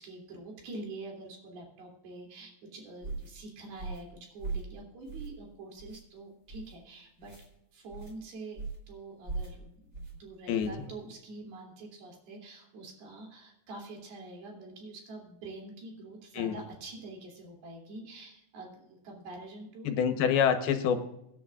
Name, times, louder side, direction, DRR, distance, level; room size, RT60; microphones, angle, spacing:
voice 1, 0.0-7.3 7.7-19.9, right 2 dB, 85° right, 0 dB, 4.9 m, -46 dB
sound 1, 3.0-3.3 3.8-4.1 4.4-4.7 5.1-5.4 5.8-6.0 6.5-6.7 7.2-7.5 7.9-8.1 8.6-8.9 9.2-9.6 9.9-10.2 10.6-10.8, right 3 dB, 20° right, 3.5 m, -39 dB
voice 2, 19.8-21.0, left 8 dB, 85° left, 8 dB, 3.0 m, -26 dB
24.5 x 10.0 x 2.5 m, 0.82 s
omnidirectional pair, 4.3 m